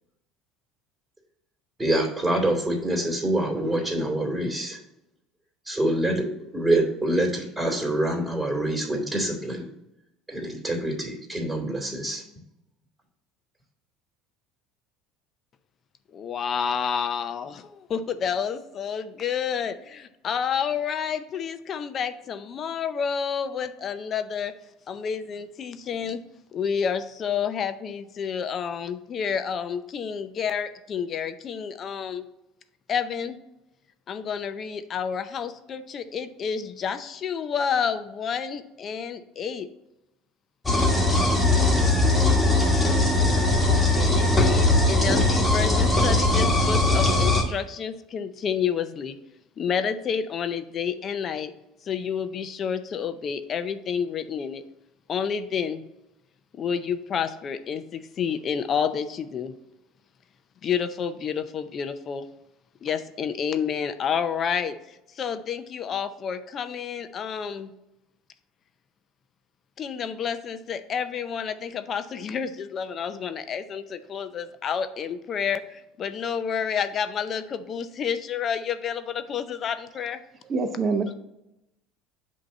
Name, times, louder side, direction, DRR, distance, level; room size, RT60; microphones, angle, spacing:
voice 1, 1.8-4.8 5.7-6.3 6.5-9.7 10.3-12.2, right 1 dB, 15° right, -2 dB, 2.5 m, -25 dB
voice 2, 16.1-24.5 24.9-26.2 26.5-32.2 32.9-33.4 34.1-39.7 44.0-49.2 49.6-51.5 51.8-54.6 55.1-55.8 56.6-59.5 60.6-62.3 62.8-64.8 65.1-67.7 69.8-80.2, left 7 dB, 40° left, 11 dB, 0.5 m, -29 dB
sound 1, 40.7-47.4, left 2 dB, 10° left, 1.4 m, -20 dB
voice 3, 80.5-81.1, right 4 dB, 35° right, 7 dB, 0.8 m, -25 dB
7.9 x 2.8 x 5.5 m, 0.89 s
supercardioid pair, 110°, 0 cm